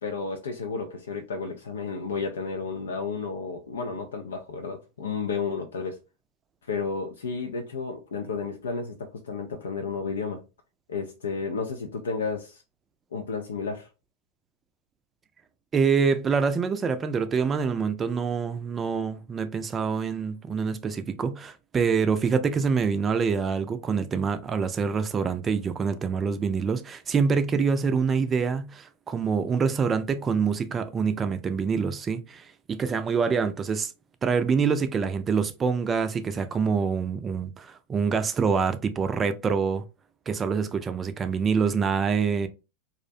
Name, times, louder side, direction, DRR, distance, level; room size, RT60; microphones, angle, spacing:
voice 1, 0.0-6.0 6.7-10.4 10.9-12.6 13.1-13.9, left 4 dB, 80° left, 0.4 m, -32 dB
voice 2, 15.7-33.9 34.2-39.8 40.3-42.5, right 5 dB, 25° right, 0.4 m, -26 dB
2.4 x 2.1 x 2.6 m
hypercardioid pair, 95°, 0 cm